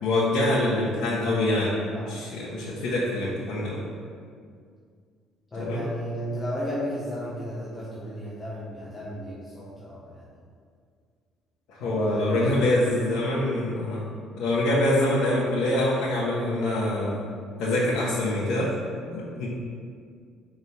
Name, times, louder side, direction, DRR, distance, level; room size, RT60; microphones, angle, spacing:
voice 1, 0.0-1.8 2.0-3.8 5.6-5.9 11.8-14.0 14.4-17.2 17.6-18.7 19.1-19.5, left 1 dB, 80° left, -10 dB, 1.3 m, -25 dB
voice 2, 5.5-10.2 11.8-12.9, equal, 20° left, -8 dB, 1.0 m, -34 dB
4.9 x 3.8 x 5.7 m, 2.1 s
cardioid pair, 140°, 0 cm